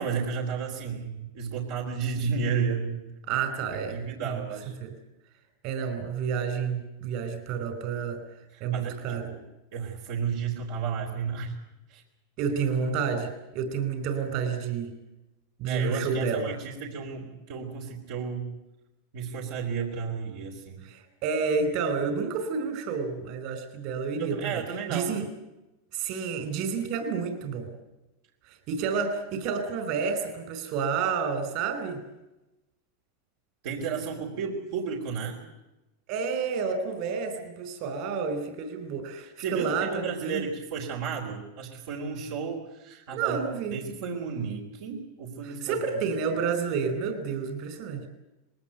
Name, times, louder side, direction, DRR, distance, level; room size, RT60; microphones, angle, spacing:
voice 1, 0.0-3.0 3.7-4.7 8.5-9.4 9.7-11.5 11.9-12.0 15.6-18.5 19.1-20.8 24.2-25.1 33.6-35.4 39.4-45.8, right 6 dB, 70° right, -1 dB, 4.1 m, -33 dB
voice 2, 3.3-4.4 4.8-4.9 5.6-8.2 8.6-9.3 12.4-15.0 15.6-16.5 20.8-24.6 24.9-25.3 25.9-27.7 28.5-32.0 36.1-40.4 43.1-43.8 45.4-48.1, right 5 dB, 55° right, 9 dB, 4.8 m, -30 dB
20.5 x 18.5 x 9.3 m, 0.97 s
hypercardioid pair, 120°, 0 cm